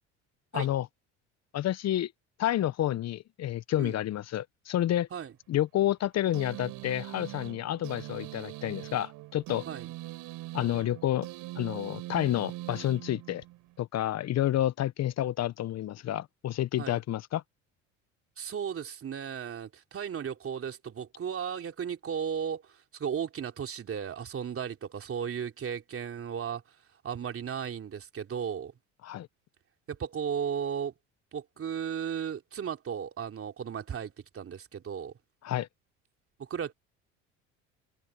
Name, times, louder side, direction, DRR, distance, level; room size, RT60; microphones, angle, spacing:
voice 1, 0.5-0.9 1.5-2.1 2.4-5.1 5.5-9.6 10.5-11.3 11.5-13.4 13.8-17.4 29.0-29.3 35.4-35.7, left 13 dB, 45° left, 1.1 m, -29 dB
sound 1, 6.3-13.7, right 18 dB, 65° right, 5.6 m, -42 dB
voice 2, 18.4-22.6 22.9-26.6 27.0-28.7 29.9-30.9 31.3-35.1 36.4-36.7, right 8 dB, 40° right, 3.3 m, -35 dB
hypercardioid pair, 70°, 36 cm